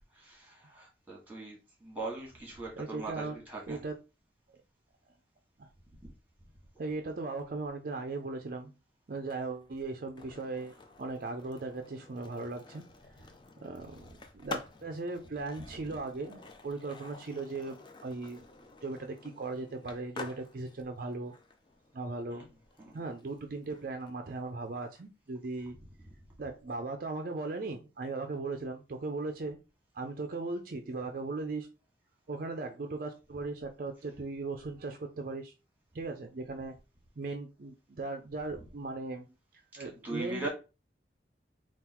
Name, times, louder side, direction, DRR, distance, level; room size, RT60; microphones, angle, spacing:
voice 1, 0.1-3.8 15.9-16.0 22.3-22.5 22.8-23.0 25.8-25.9 39.8-40.5, right 2 dB, 10° right, 1.7 m, -41 dB
voice 2, 2.8-3.4 3.7-4.0 5.6-5.7 6.8-8.7 9.1-12.8 13.6-18.4 18.8-21.3 21.9-22.4 22.9-25.8 26.4-29.6 29.9-31.7 32.3-35.5 35.9-36.8 37.2-39.3 39.8-40.5, right 3 dB, 50° right, 0.5 m, -38 dB
Skateboard, 9.2-25.0, left 3 dB, 25° left, 0.5 m, -49 dB
3.8 x 2.4 x 4.3 m
head